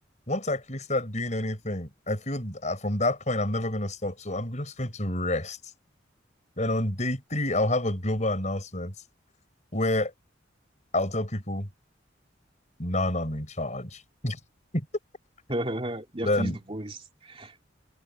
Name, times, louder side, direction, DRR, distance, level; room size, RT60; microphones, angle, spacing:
voice 1, 0.3-5.6 6.6-8.9 9.7-10.1 10.9-11.7 12.8-14.4 14.7-14.9 16.2-16.6, left 1 dB, 40° left, 6.1 m, -28 dB
voice 2, 15.5-17.5, right 1 dB, 30° right, 3.1 m, -33 dB
head